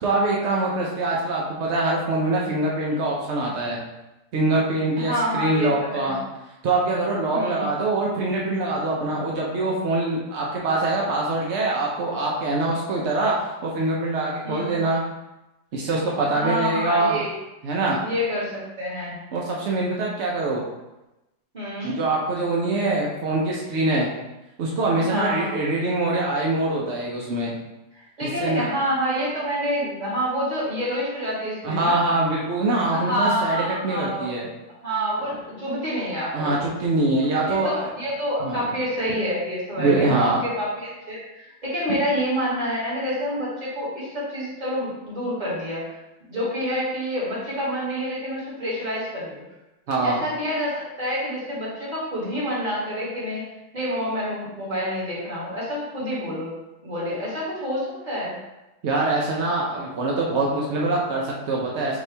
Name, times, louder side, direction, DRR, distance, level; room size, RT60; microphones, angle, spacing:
voice 1, 0.0-3.8 4.3-6.2 6.6-13.3 13.6-15.0 15.7-17.2 17.6-18.0 19.3-20.6 21.8-24.1 24.6-27.5 28.2-28.7 31.6-34.5 36.3-37.8 38.4-38.7 39.8-40.4 49.9-50.2 58.8-62.0, right 2 dB, 75° right, -3 dB, 0.6 m, -24 dB
voice 2, 5.0-6.1 7.3-7.7 14.4-14.7 16.3-17.3 18.0-19.2 21.5-22.0 25.0-25.5 27.9-32.0 32.9-34.3 34.8-36.7 37.4-46.0 46.2-49.4 50.0-53.5 53.7-56.5 56.8-58.4, equal, 25° right, -8 dB, 1.7 m, -28 dB
5.8 x 2.8 x 3.3 m, 0.98 s
omnidirectional pair, 2.0 m